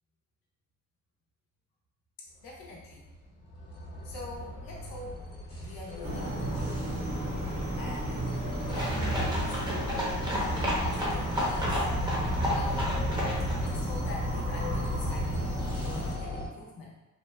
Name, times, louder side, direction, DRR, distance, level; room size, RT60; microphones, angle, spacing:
voice 1, 2.4-3.0 4.0-5.2 5.6-6.7 7.8-9.9 10.3-11.8 12.5-13.1 13.7-17.0, left 2 dB, 85° left, -3 dB, 0.6 m, -43 dB
sound 1, 2.5-16.5, left 1 dB, 45° left, 1.0 m, -35 dB
sound 2, 6.0-16.1, right 2 dB, 55° right, 1.0 m, -35 dB
sound 3, 8.7-13.7, equal, 10° right, 0.8 m, -32 dB
2.8 x 2.0 x 2.2 m, 1.1 s
cardioid pair, 70°, 33 cm